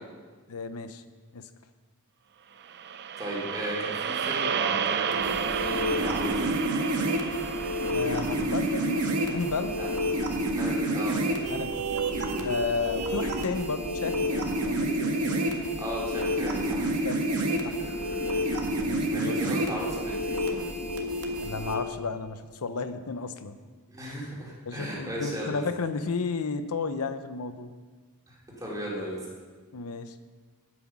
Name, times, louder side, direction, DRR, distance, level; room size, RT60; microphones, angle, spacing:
voice 1, 0.5-1.0 1.3-1.5 7.9-9.8 11.5-11.9 12.4-15.4 17.0-17.2 17.6-17.7 18.8-19.4 21.4-23.6 24.7-27.7 29.7-30.2, left 4 dB, 75° left, 10 dB, 0.7 m, -33 dB
sound 1, 2.6-10.9, right 7 dB, 50° right, 0.5 m, -32 dB
voice 2, 3.2-6.6 9.7-9.9 10.5-11.3 15.8-16.9 17.3-17.5 17.8-18.3 19.1-20.7 23.9-25.6 28.3-29.2, equal, 15° right, -5 dB, 3.2 m, -36 dB
sound 2, 5.1-21.8, equal, 85° right, 1.8 m, -29 dB
11.5 x 9.1 x 6.0 m, 1.4 s
head